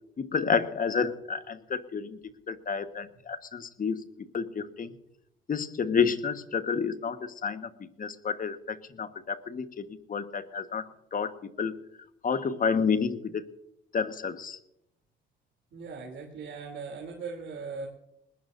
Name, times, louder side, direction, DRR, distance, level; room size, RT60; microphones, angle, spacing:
voice 1, 0.2-2.2 2.5-4.9 5.5-11.8 12.2-13.5 13.9-14.6, left 6 dB, 45° left, 9 dB, 1.5 m, -30 dB
voice 2, 15.7-17.9, right 4 dB, 70° right, 0 dB, 3.3 m, -39 dB
20.5 x 19.5 x 2.7 m, 0.81 s
cardioid pair, 90°, 20 cm